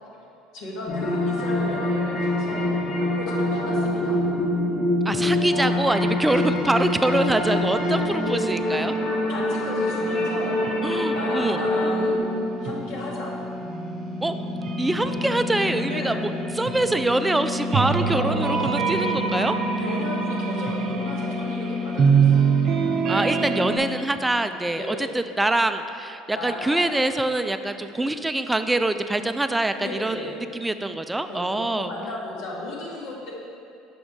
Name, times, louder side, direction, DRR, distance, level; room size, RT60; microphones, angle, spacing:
voice 1, 0.5-4.2 9.3-10.6 11.1-12.2 12.6-13.3 15.9-16.2 17.7-18.6 19.8-22.6 24.7-25.1 26.3-26.9 29.8-30.4 31.3-33.3, left 2 dB, 70° left, -3 dB, 1.3 m, -34 dB
sound 1, 0.9-12.2, left 1 dB, 45° left, 1.1 m, -24 dB
voice 2, 5.1-8.9 10.8-11.6 14.2-14.3 14.8-19.6 23.1-31.9, right 2 dB, 10° right, 9 dB, 0.3 m, -25 dB
sound 2, 9.5-23.8, right 4 dB, 50° right, 0.6 m, -26 dB
6.0 x 5.1 x 3.6 m, 2.6 s
supercardioid pair, 85°, 0 cm